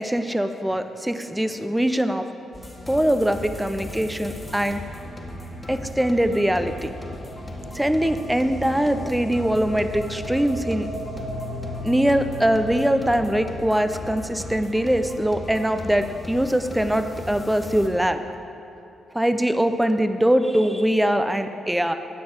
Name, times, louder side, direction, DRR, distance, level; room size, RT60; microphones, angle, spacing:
voice 1, 0.0-2.3 2.9-4.8 5.7-6.9 7.7-10.9 11.8-18.2 19.1-21.9, equal, 5° right, 9 dB, 0.7 m, -22 dB
sound 1, 2.5-17.9, left 1 dB, 20° left, 1.6 m, -37 dB
sound 2, 5.0-16.0, equal, 60° right, 2.5 m, -38 dB
10.5 x 8.5 x 4.4 m, 2.7 s
hypercardioid pair, 40°, 0 cm